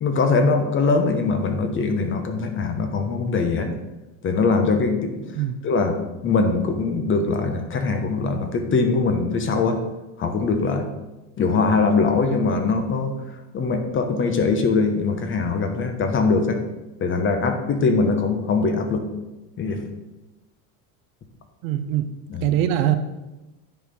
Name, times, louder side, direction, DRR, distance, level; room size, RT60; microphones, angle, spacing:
voice 1, 0.0-3.7 4.2-5.3 5.6-9.8 10.2-10.9 11.4-13.1 13.5-16.6 17.0-19.1 19.6-19.8 22.3-22.4, left 4 dB, 30° left, 6 dB, 1.1 m, -22 dB
voice 2, 21.6-22.1 22.4-23.0, right 11 dB, 70° right, 9 dB, 0.9 m, -22 dB
9.7 x 4.3 x 5.5 m, 1.0 s
supercardioid pair, 130°, 41 cm